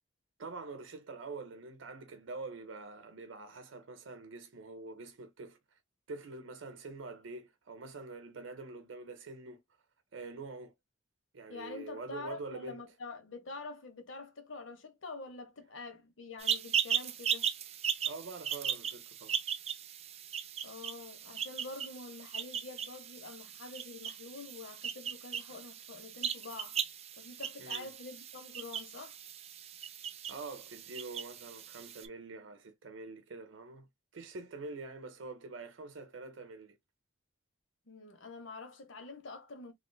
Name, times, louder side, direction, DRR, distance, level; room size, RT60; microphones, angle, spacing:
voice 1, 0.4-5.6 6.1-9.6 10.1-10.7 11.3-12.8 18.1-19.4 27.6-27.9 30.3-36.8, right 3 dB, 70° right, 0.7 m, -45 dB
voice 2, 11.5-17.5 20.6-26.8 27.2-29.2 37.9-39.7, left 3 dB, 75° left, 0.9 m, -46 dB
sound 1, 16.4-32.1, right 8 dB, 30° right, 0.4 m, -38 dB
3.1 x 3.0 x 2.2 m
head